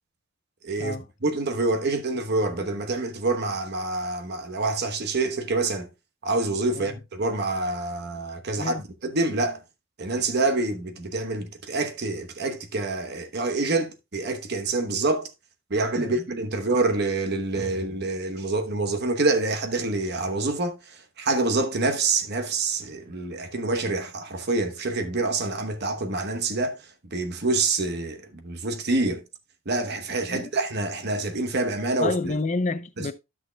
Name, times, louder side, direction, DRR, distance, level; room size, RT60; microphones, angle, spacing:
voice 1, 0.6-1.0 1.2-5.9 6.2-8.7 9.0-9.6 10.0-15.3 15.7-26.8 27.1-29.2 29.7-32.1 33.0-33.1, right 3 dB, 50° right, 1.0 m, -26 dB
voice 2, 32.0-33.1, left 3 dB, 35° left, 0.5 m, -29 dB
12.5 x 6.1 x 2.2 m
head